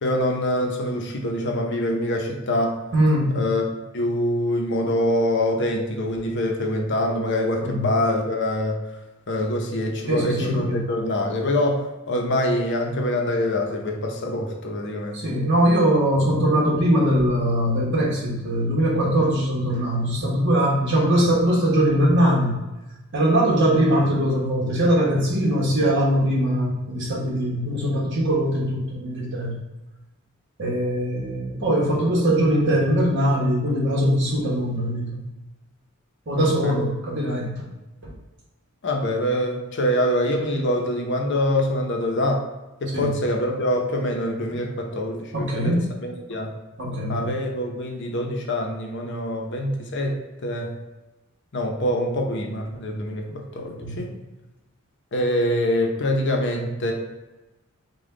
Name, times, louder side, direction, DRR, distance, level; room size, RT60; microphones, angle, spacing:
voice 1, 0.0-2.8 3.3-8.8 9.3-15.2 36.4-36.8 38.8-42.4 42.8-45.8 46.0-46.5 47.1-50.1 50.4-50.7 51.5-53.3 53.5-54.1 55.1-56.9, left 1 dB, 55° left, 1 dB, 0.7 m, -25 dB
voice 2, 2.9-3.5 7.6-7.9 10.1-10.8 15.1-22.6 23.1-29.6 30.6-35.2 36.3-37.7 38.0-38.1 42.9-43.1 45.3-45.9 46.8-47.3 53.3-54.0, equal, 55° right, -3 dB, 1.2 m, -21 dB
5.1 x 2.3 x 3.7 m, 1.1 s
head